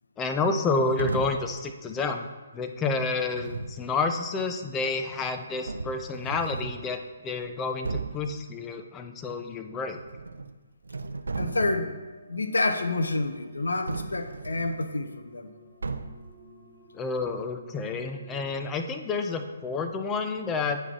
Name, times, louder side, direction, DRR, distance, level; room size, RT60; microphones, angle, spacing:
voice 1, 0.2-2.3 2.5-10.0 16.9-20.8, left 3 dB, 15° left, 6 dB, 0.5 m, -29 dB
sound 1, 1.0-1.6 3.2-3.9 5.1-5.2 5.7-6.9 7.4-7.5 7.8-8.3 9.9-10.5 10.8-12.0 13.9-14.8 15.8-16.3, right 3 dB, 80° right, 0.4 m, -35 dB
sound 2, 11.3-18.6, equal, 35° left, 2.2 m, -53 dB
voice 2, 11.4-11.9 12.3-15.5, left 2 dB, 80° left, 8 dB, 0.6 m, -28 dB
8.9 x 4.2 x 4.4 m, 1.2 s
figure-of-eight pair, 140°, 0 cm